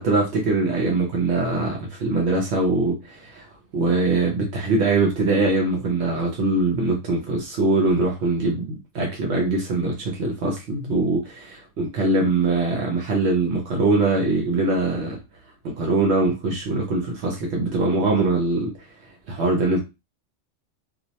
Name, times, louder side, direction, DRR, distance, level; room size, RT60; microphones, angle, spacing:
voice 1, 0.0-3.5 3.7-15.2 15.6-19.8, right 3 dB, 70° right, 0 dB, 0.8 m, -22 dB
2.3 x 2.0 x 2.7 m, 0.26 s
omnidirectional pair, 1.2 m